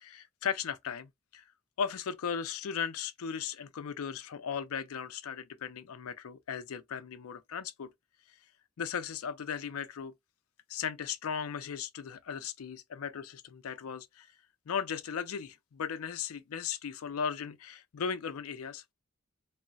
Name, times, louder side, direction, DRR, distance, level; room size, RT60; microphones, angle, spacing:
voice 1, 0.0-1.4 1.8-7.9 8.8-10.1 10.7-14.3 14.7-18.9, left 7 dB, 90° left, 0.4 m, -37 dB
3.9 x 2.1 x 2.3 m
head